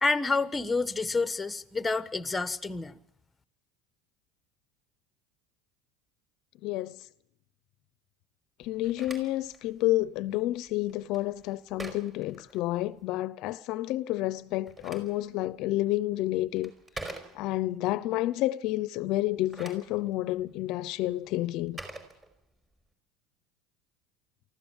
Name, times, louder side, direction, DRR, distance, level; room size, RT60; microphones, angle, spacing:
voice 1, 0.0-3.0, left 3 dB, 10° left, 1.2 m, -28 dB
voice 2, 6.6-7.1 8.6-16.7 17.3-21.8, left 16 dB, 60° left, 0.7 m, -30 dB
Telephone, 8.6-13.1 14.4-17.8 19.2-22.8, right 2 dB, 15° right, 5.0 m, -47 dB
24.0 x 15.0 x 7.3 m
supercardioid pair, 115°, 0 cm